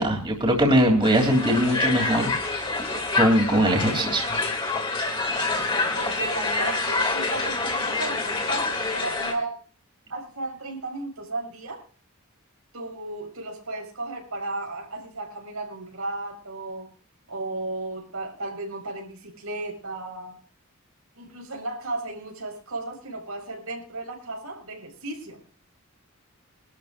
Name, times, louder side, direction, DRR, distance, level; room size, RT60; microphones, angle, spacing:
voice 1, 0.0-2.7 3.1-4.4, equal, 25° right, 1 dB, 3.2 m, -21 dB
Crowd, 1.0-9.3, left 3 dB, 25° left, 2.7 m, -27 dB
voice 2, 5.9-9.6 10.1-11.8 12.7-16.9 17.3-20.4 21.2-25.4, right 2 dB, 85° right, 2 dB, 5.4 m, -34 dB
23.5 x 13.0 x 2.6 m, 0.38 s
head